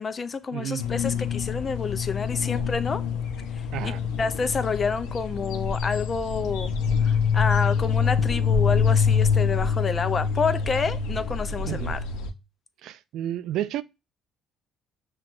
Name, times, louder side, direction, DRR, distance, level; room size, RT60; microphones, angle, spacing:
voice 1, 0.0-3.0 3.5-3.9 4.2-6.7 7.0-12.0, left 5 dB, 35° left, 0.4 m, -28 dB
voice 2, 0.5-0.8 3.7-4.0 11.7-11.9 12.8-13.8, right 12 dB, 75° right, 0.3 m, -31 dB
sound 1, 0.8-12.3, left 6 dB, 85° left, 0.5 m, -25 dB
5.8 x 2.3 x 2.5 m
supercardioid pair, 85°, 0 cm